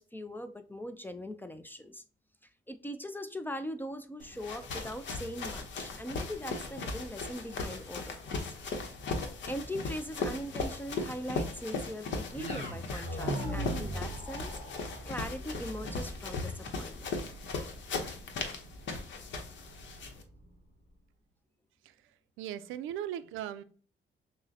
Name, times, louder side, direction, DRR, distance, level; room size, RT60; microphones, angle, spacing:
voice 1, 0.0-2.0 2.7-8.4 9.5-14.6 15.1-17.1, equal, 10° left, 10 dB, 0.4 m, -41 dB
sound 1, 4.2-20.2, left 3 dB, 65° left, 0.8 m, -38 dB
sound 2, 12.3-20.5, right 1 dB, 30° left, 1.5 m, -41 dB
voice 2, 21.8-23.6, right 11 dB, 90° right, 12 dB, 0.4 m, -39 dB
6.1 x 2.1 x 2.7 m, 0.41 s
cardioid pair, 90°, 20 cm